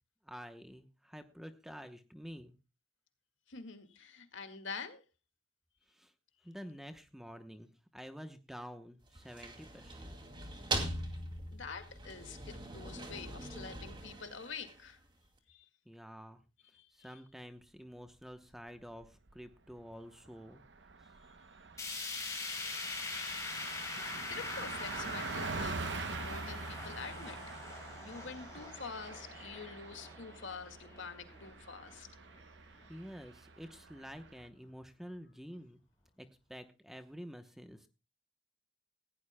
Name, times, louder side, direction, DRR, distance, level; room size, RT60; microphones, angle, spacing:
voice 1, 0.2-2.5 5.9-6.1 6.4-10.1 15.9-16.4 16.9-20.6 32.9-35.8 36.2-37.9, equal, ahead, 8 dB, 0.9 m, -49 dB
voice 2, 3.5-5.0 11.5-15.0 15.5-15.7 16.7-17.2 24.3-27.6 28.0-32.1, left 5 dB, 75° left, 7 dB, 2.0 m, -46 dB
sound 1, 9.0-15.1, right 2 dB, 25° right, 2.4 m, -41 dB
Car passing by, 18.8-19.4 19.8-19.9 20.2-34.5, right 4 dB, 60° right, 0.8 m, -45 dB
sound 2, 21.8-31.9 32.3-32.4 32.8-32.9 33.8-33.9, left 3 dB, 15° left, 5.9 m, -43 dB
18.5 x 16.0 x 2.2 m, 0.29 s
head